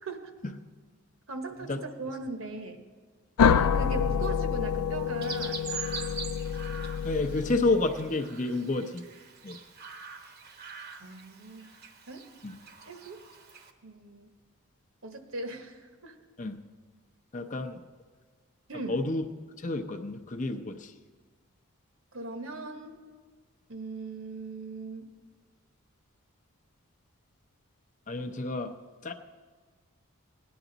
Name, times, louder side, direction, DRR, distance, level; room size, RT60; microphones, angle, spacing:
voice 1, 0.0-0.3 1.3-2.8 3.4-5.6 11.0-11.6 12.1-12.2 12.8-13.2 13.8-14.3 15.0-16.1 18.7-19.0 22.1-23.0 23.7-25.2, right 3 dB, 65° right, 6 dB, 1.2 m, -39 dB
sound 1, 3.4-8.1, left 7 dB, 85° left, 0.4 m, -27 dB
Chirp tweet, 5.2-13.7, right 5 dB, 45° right, 0.9 m, -43 dB
voice 2, 7.0-9.0 9.4-9.6 12.4-12.6 16.4-16.6 17.3-17.8 18.9-19.2 19.6-20.9 28.1-28.7 29.0-29.1, left 2 dB, 35° left, 6 dB, 0.6 m, -30 dB
18.0 x 10.5 x 4.0 m, 1.5 s
head